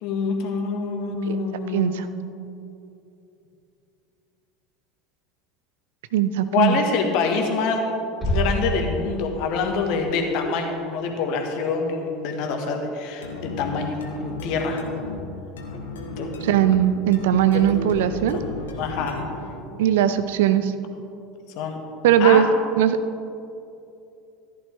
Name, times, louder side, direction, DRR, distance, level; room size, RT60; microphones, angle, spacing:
voice 1, 0.0-2.2 6.5-7.8 8.2-14.9 16.2-16.4 17.5-17.7 18.1-19.2 21.6-21.8 22.2-22.4, left 5 dB, 50° left, 3 dB, 1.5 m, -26 dB
voice 2, 1.7-2.1 6.1-6.8 16.4-18.4 19.8-20.7 22.0-23.0, right 10 dB, 60° right, 12 dB, 0.5 m, -19 dB
sound 1, 8.2-9.8, equal, 5° left, 3.2 m, -27 dB
sound 2, 13.2-19.7, left 2 dB, 70° left, 1.2 m, -34 dB
14.5 x 11.0 x 3.5 m, 2.7 s
figure-of-eight pair, 70°, 0 cm